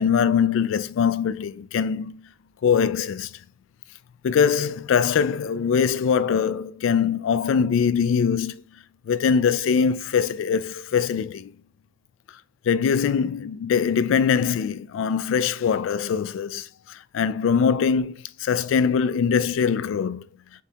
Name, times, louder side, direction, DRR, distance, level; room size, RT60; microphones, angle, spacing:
voice 1, 0.0-2.3 2.6-3.3 4.2-8.6 9.1-11.5 12.7-20.3, left 6 dB, 80° left, 0.3 m, -22 dB
7.1 x 2.8 x 2.2 m
head